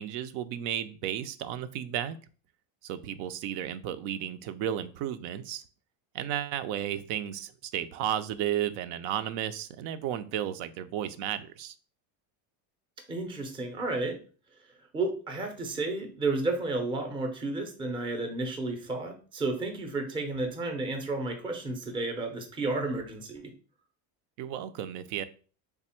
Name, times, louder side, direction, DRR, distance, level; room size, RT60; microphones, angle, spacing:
voice 1, 0.0-2.2 2.8-5.6 6.1-11.7 24.4-25.2, right 10 dB, 75° right, 13 dB, 0.5 m, -33 dB
voice 2, 13.1-14.2 14.9-23.5, right 2 dB, 10° right, 4 dB, 0.5 m, -32 dB
3.4 x 2.0 x 4.2 m, 0.39 s
cardioid pair, 125°, 50 cm